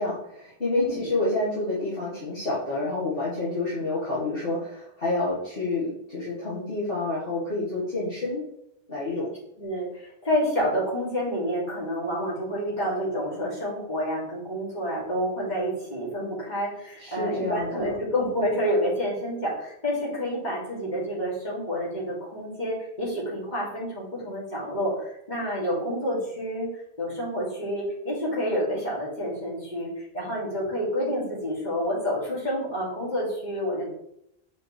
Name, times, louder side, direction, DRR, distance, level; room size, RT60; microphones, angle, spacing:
voice 1, 0.0-8.5 8.9-9.3 17.0-17.9, left 2 dB, 60° left, -9 dB, 1.8 m, -28 dB
voice 2, 9.6-26.7 27.0-33.9, equal, 45° left, -6 dB, 2.6 m, -29 dB
6.5 x 4.5 x 3.2 m, 0.79 s
omnidirectional pair, 1.1 m